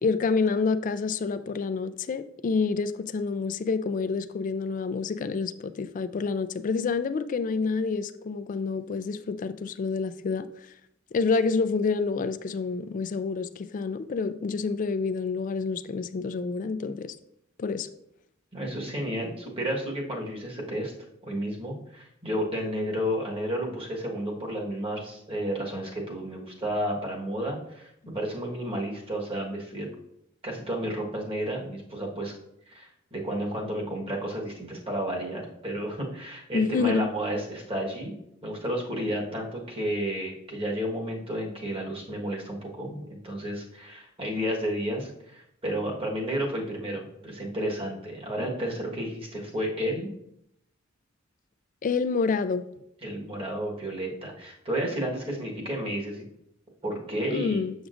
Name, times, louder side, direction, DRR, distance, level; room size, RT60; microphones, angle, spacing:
voice 1, 0.0-10.5 11.1-17.2 17.6-17.9 36.5-37.1 51.8-52.6 57.3-57.7, left 4 dB, 40° left, 0.3 m, -28 dB
voice 2, 18.5-20.9 21.2-29.9 30.4-32.3 32.7-38.1 38.4-50.1 53.0-56.3 56.8-57.6, equal, 30° right, 1.4 m, -32 dB
7.0 x 6.2 x 2.5 m
head